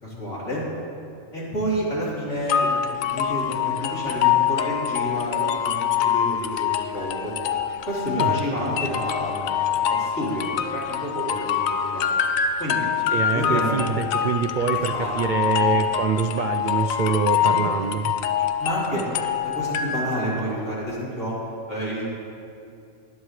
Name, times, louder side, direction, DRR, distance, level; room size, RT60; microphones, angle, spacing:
voice 1, 0.0-0.6 1.3-5.7 6.0-7.3 7.8-10.4 10.7-12.1 12.6-12.8 13.3-13.8 14.9-15.1 15.6-15.8 17.4-17.7 18.6-19.0 19.4-21.4 21.7-22.0, equal, 65° left, -8 dB, 4.0 m, -29 dB
sound 1, 2.5-20.4, left 8 dB, 85° left, 1.0 m, -25 dB
voice 2, 13.1-18.1, right 6 dB, 65° right, 6 dB, 0.4 m, -25 dB
19.0 x 11.0 x 3.2 m, 2.5 s
omnidirectional pair, 1.4 m